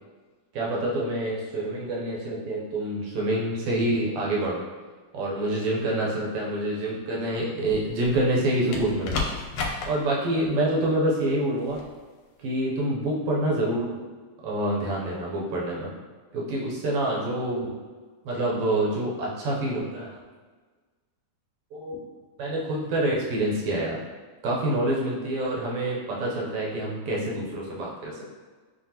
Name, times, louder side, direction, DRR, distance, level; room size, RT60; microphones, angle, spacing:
voice 1, 0.5-4.6 5.1-9.2 9.9-11.8 12.4-14.0 14.4-15.9 16.3-17.7 18.2-20.2 21.7-22.0 22.4-24.0 24.4-28.3, right 1 dB, 85° right, -4 dB, 1.3 m, -27 dB
sound 1, 7.7-8.3 8.7-9.9 11.7-11.9, left 3 dB, 80° left, 1.9 m, -31 dB
6.3 x 2.3 x 2.8 m, 1.4 s
omnidirectional pair, 3.5 m